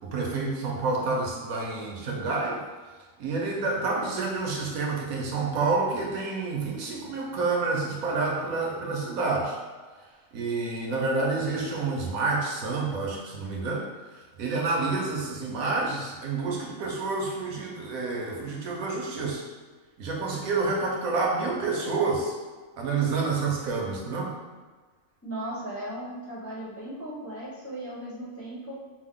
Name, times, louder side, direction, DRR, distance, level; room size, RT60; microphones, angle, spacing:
voice 1, 0.0-2.6 3.2-9.6 10.3-13.9 14.4-19.4 20.0-22.3 22.8-24.3, right 3 dB, 85° right, -1 dB, 1.2 m, -28 dB
voice 2, 25.2-28.7, right 1 dB, 10° left, -8 dB, 1.0 m, -37 dB
5.3 x 2.1 x 3.7 m, 1.4 s
omnidirectional pair, 1.4 m